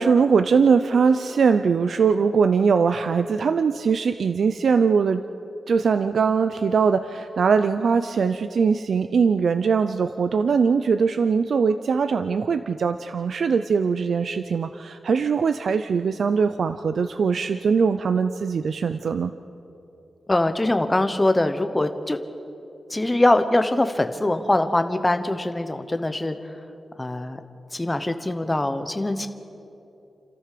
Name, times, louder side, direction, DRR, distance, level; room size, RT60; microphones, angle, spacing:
voice 1, 0.0-5.2 5.7-19.3, right 5 dB, 60° right, 10 dB, 0.5 m, -21 dB
voice 2, 20.3-22.2 22.9-26.4 27.0-27.4 27.7-29.3, left 1 dB, 15° left, 8 dB, 1.1 m, -22 dB
30.0 x 13.5 x 6.8 m, 2.9 s
wide cardioid pair, 150°, 0 cm